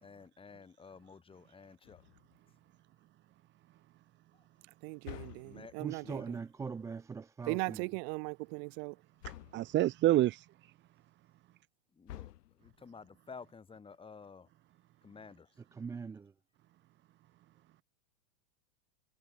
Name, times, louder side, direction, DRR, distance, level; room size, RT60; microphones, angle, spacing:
voice 1, 0.0-2.0 5.4-6.3 12.0-12.3 12.6-14.5 15.0-15.5, left 5 dB, 10° left, 3.3 m, -52 dB
sound 1, 1.8-2.5 5.0-6.0 9.2-9.8 12.1-12.9, left 14 dB, 85° left, 3.9 m, -49 dB
voice 2, 4.8-6.4 7.5-9.0, right 40 dB or more, 45° right, 5.3 m, -38 dB
voice 3, 5.8-7.8 15.7-16.3, right 5 dB, 5° right, 0.6 m, -41 dB
voice 4, 9.2-10.7, right 15 dB, 25° right, 1.2 m, -29 dB
supercardioid pair, 160°, 47 cm